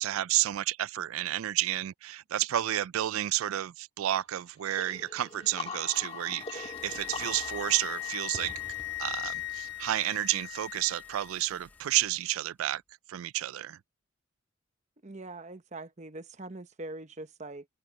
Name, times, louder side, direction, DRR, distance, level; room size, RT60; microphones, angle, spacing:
voice 1, 0.0-8.6 9.0-12.8 13.1-13.8, right 13 dB, 90° right, 0.3 m, -31 dB
sound 1, 4.8-10.3, left 4 dB, 30° left, 1.8 m, -44 dB
Car / Engine starting, 4.8-5.1 5.6-12.5, left 2 dB, 10° left, 0.8 m, -56 dB
Wind instrument woodwind instrument, 5.4-11.4, left 16 dB, 50° left, 1.2 m, -39 dB
voice 2, 15.0-17.7, right 2 dB, 35° right, 1.0 m, -42 dB
head